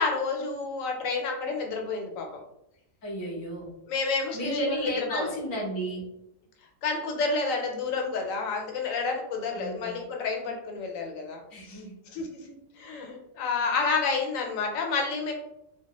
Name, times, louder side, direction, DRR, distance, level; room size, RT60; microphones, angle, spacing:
voice 1, 0.0-2.3 3.9-5.3 6.8-11.8 12.1-12.3 12.8-15.3, left 4 dB, 85° left, 2 dB, 1.0 m, -29 dB
voice 2, 3.0-3.7 4.3-6.0 9.5-10.0 11.5-11.9, equal, 30° left, -4 dB, 0.4 m, -33 dB
2.2 x 2.1 x 2.8 m, 0.83 s
omnidirectional pair, 1.4 m